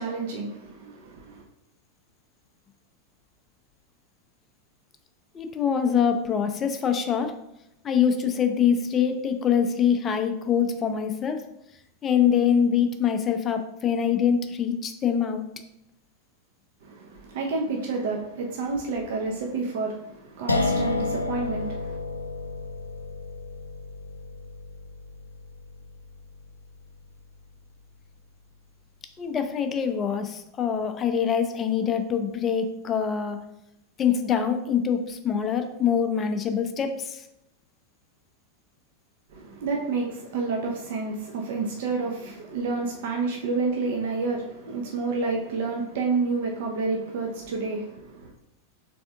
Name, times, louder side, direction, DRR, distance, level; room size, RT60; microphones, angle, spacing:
voice 1, 0.0-1.4 16.8-22.0 39.3-48.3, right 4 dB, 55° right, 0 dB, 0.6 m, -29 dB
voice 2, 5.3-7.3 7.8-11.4 12.0-15.4 29.2-33.4 34.0-37.3, left 7 dB, 25° left, 7 dB, 0.5 m, -24 dB
sound 1, 20.5-27.4, left 3 dB, 80° left, 0.3 m, -31 dB
3.5 x 3.4 x 3.5 m, 0.85 s
figure-of-eight pair, 90°, 0 cm